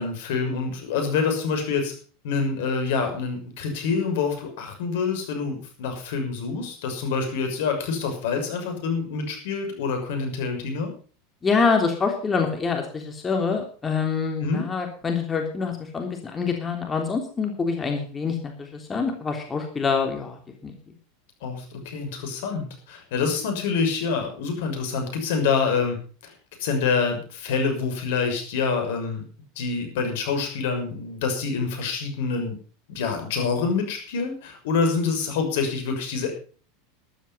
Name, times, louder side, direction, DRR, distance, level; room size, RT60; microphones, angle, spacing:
voice 1, 0.0-1.9 2.2-10.9 14.4-14.6 21.4-26.0 26.2-26.3 26.6-29.2 29.6-32.6 32.9-36.3, left 5 dB, 70° left, 5 dB, 6.5 m, -26 dB
voice 2, 11.4-20.7, left 5 dB, 20° left, 3 dB, 3.4 m, -26 dB
14.0 x 12.5 x 5.6 m, 0.41 s
hypercardioid pair, 95°, 0 cm